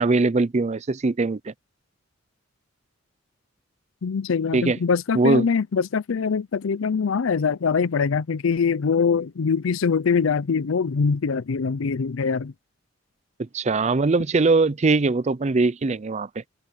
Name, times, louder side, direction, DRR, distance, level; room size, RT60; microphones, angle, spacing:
voice 1, 0.0-1.5 4.5-4.8 5.1-5.5 13.4-16.4, right 3 dB, 35° right, 0.5 m, -21 dB
voice 2, 4.0-12.5, left 5 dB, 90° left, 0.5 m, -23 dB
open air
head